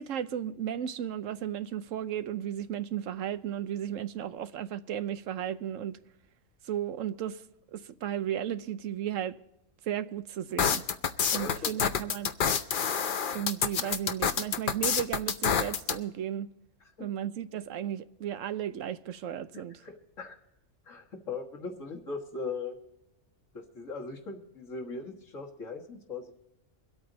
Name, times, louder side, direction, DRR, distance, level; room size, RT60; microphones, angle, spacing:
voice 1, 0.0-6.0 6.6-7.4 7.7-9.4 9.8-10.8 11.3-12.3 13.3-16.5 17.0-19.8, right 10 dB, 90° right, 1.1 m, -34 dB
sound 1, 10.6-16.0, left 7 dB, 50° left, 0.8 m, -28 dB
voice 2, 11.3-11.7 17.0-17.1 19.8-20.3 20.9-22.8 23.5-26.3, left 4 dB, 85° left, 1.9 m, -39 dB
24.5 x 8.6 x 3.9 m
omnidirectional pair, 1.3 m